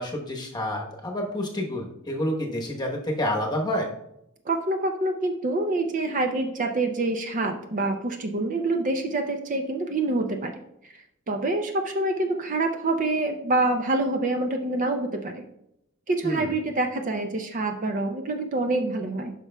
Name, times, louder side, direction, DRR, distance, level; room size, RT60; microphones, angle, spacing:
voice 1, 0.0-3.9 16.2-16.5, left 1 dB, 20° left, 0 dB, 1.1 m, -29 dB
voice 2, 4.5-10.5 11.3-15.4 16.1-19.3, right 2 dB, 35° right, 5 dB, 0.5 m, -26 dB
9.8 x 6.0 x 2.3 m, 0.80 s
head